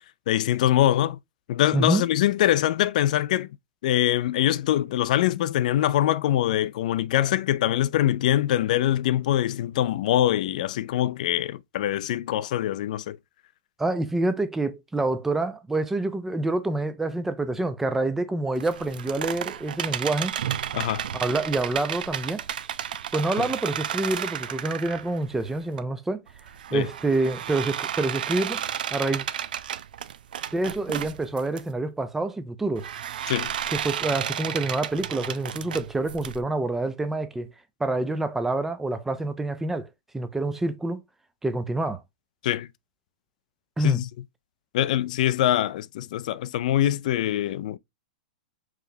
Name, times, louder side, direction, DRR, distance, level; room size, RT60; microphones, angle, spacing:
voice 1, 0.3-1.2 1.5-3.5 3.8-13.2 20.7-21.1 23.4-23.5 26.7-26.9 33.3-33.5 42.4-42.7 43.8-44.1 44.7-47.8, left 12 dB, 60° left, 0.4 m, -23 dB
voice 2, 1.7-2.0 13.8-20.3 21.1-22.4 23.1-26.2 26.7-28.6 28.9-29.3 30.5-32.9 33.7-37.5 37.8-39.9 40.1-41.0 41.4-42.0 43.8-44.0, right 2 dB, 5° right, 0.5 m, -27 dB
sound 1, 18.6-25.8 26.3-31.6 32.8-36.4, right 9 dB, 80° right, 0.5 m, -32 dB
4.8 x 3.2 x 2.7 m
hypercardioid pair, 150°, 5 cm